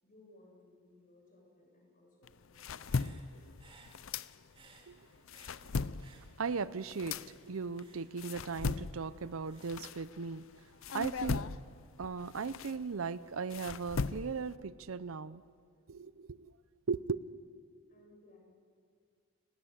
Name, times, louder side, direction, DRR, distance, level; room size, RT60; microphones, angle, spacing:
voice 1, 0.0-3.8 17.9-18.4, left 2 dB, 40° left, 7.3 m, -62 dB
sound 1, 2.2-4.8 5.1-10.4 10.8-14.6, left 4 dB, 70° left, 0.6 m, -39 dB
Human voice / Breathing, 2.5-6.7 7.0-10.6, right 3 dB, 25° right, 2.5 m, -63 dB
voice 2, 6.1-7.2 7.5-10.5 10.9-11.5 12.0-15.4 15.9-16.6 16.9-17.2, right 5 dB, 70° right, 0.6 m, -37 dB
29.0 x 20.0 x 8.0 m
head